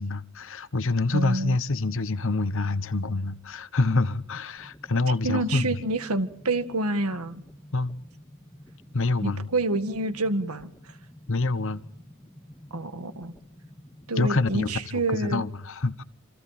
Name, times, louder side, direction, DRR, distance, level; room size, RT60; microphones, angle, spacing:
voice 1, 0.0-5.7 7.7-8.0 8.9-9.5 11.3-11.9 14.2-16.0, left 3 dB, 60° left, 1.0 m, -26 dB
voice 2, 1.1-1.6 5.2-7.4 9.2-11.0 12.7-13.3 14.1-15.4, right 2 dB, 80° right, 2.0 m, -28 dB
sound 1, 4.6-14.6, left 1 dB, 10° left, 2.0 m, -50 dB
27.5 x 27.0 x 4.3 m
head